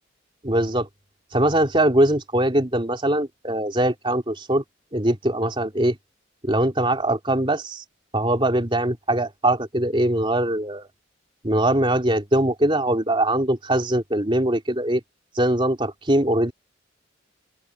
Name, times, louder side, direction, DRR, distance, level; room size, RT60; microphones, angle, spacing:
voice 1, 0.4-0.9 1.3-4.6 4.9-6.0 6.4-7.8 8.1-10.9 11.4-15.0 15.3-16.5, right 1 dB, 25° right, 3.2 m, -22 dB
open air
head